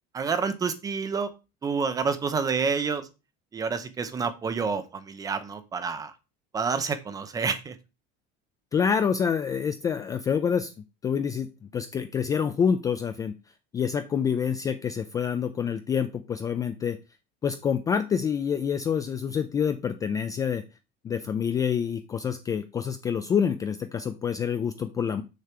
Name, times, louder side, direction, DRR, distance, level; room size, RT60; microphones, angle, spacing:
voice 1, 0.1-1.3 1.6-3.1 3.5-6.1 6.5-7.8, right 5 dB, 15° right, 12 dB, 0.7 m, -28 dB
voice 2, 8.7-10.7 11.0-13.4 13.7-17.0 17.4-20.6 21.0-25.2, left 7 dB, 15° left, 9 dB, 0.3 m, -27 dB
6.7 x 6.6 x 4.4 m, 0.29 s
cardioid pair, 170°, 21 cm